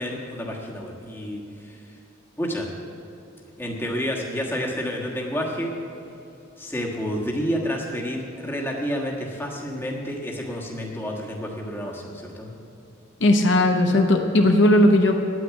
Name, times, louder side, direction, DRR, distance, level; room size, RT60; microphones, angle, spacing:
voice 1, 0.0-1.8 2.4-2.7 3.6-5.7 6.6-12.5, equal, 10° left, -2 dB, 1.4 m, -29 dB
voice 2, 13.2-15.1, left 1 dB, 60° left, 3 dB, 0.9 m, -17 dB
9.8 x 9.1 x 8.3 m, 2.8 s
head